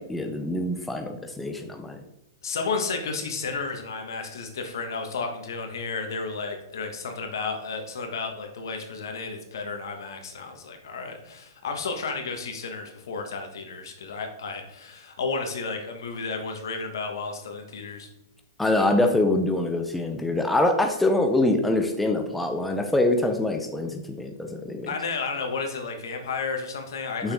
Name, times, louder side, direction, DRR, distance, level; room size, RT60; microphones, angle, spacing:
voice 1, 0.1-2.0 18.6-24.9 27.2-27.3, left 2 dB, 5° left, 4 dB, 0.6 m, -24 dB
voice 2, 2.4-18.1 24.9-27.3, left 4 dB, 80° left, 4 dB, 1.4 m, -32 dB
6.4 x 5.9 x 3.5 m, 0.86 s
hypercardioid pair, 150°, 2 cm